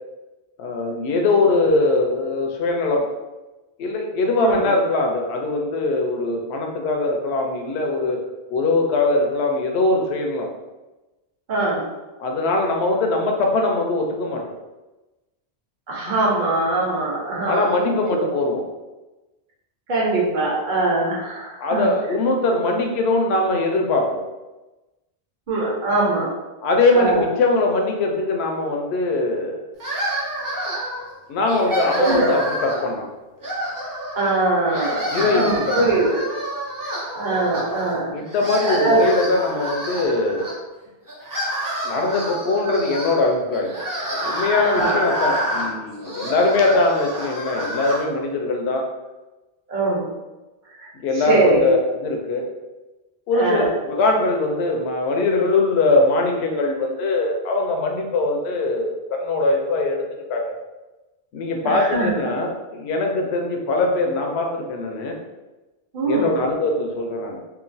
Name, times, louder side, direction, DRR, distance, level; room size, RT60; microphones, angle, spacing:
voice 1, 0.6-3.1 3.8-8.2 8.5-10.5 12.2-14.5 17.4-18.7 21.6-24.2 26.6-29.7 31.3-33.1 35.1-36.0 38.1-40.5 41.8-43.7 44.1-48.9 51.0-52.5 53.3-60.0 60.3-60.6 61.3-65.2 66.0-67.4, left 2 dB, 75° left, 2 dB, 0.8 m, -21 dB
voice 2, 11.5-11.8 15.9-17.7 18.1-18.3 19.9-21.9 25.5-26.3 26.9-27.2 32.0-32.3 34.1-36.2 36.8-38.2 38.6-39.1 44.6-45.0 49.7-50.0 50.8-50.9 51.3-51.6 53.3-53.7 61.6-62.1 65.9-66.4, right 2 dB, 50° right, -5 dB, 0.9 m, -22 dB
sound 1, 29.8-31.1 31.5-32.9 33.4-34.4 34.7-37.9 38.3-40.5 41.1-48.0, equal, 25° right, 0.5 m, -28 dB
2.9 x 2.4 x 2.5 m, 1.1 s
omnidirectional pair, 1.1 m